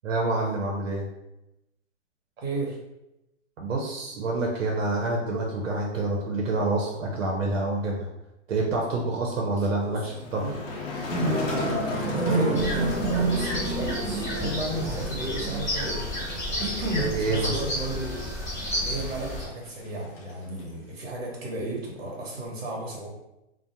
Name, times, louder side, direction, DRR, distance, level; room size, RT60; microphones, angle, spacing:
voice 1, 0.0-1.1 3.6-8.1 8.5-10.6 17.0-17.6, right 2 dB, 85° right, -1 dB, 0.7 m, -27 dB
voice 2, 2.4-2.8 9.9-10.5 12.1-16.0 16.6-18.3 18.8-23.1, right 2 dB, 55° right, -2 dB, 1.0 m, -33 dB
Motor vehicle (road), 9.8-22.5, left 3 dB, 50° left, 0.6 m, -39 dB
sound 1, 11.1-16.7, right 2 dB, 25° right, 1.2 m, -29 dB
sound 2, 12.5-19.4, left 1 dB, 10° left, 0.6 m, -32 dB
2.4 x 2.1 x 2.8 m, 0.90 s
hypercardioid pair, 160°, 37 cm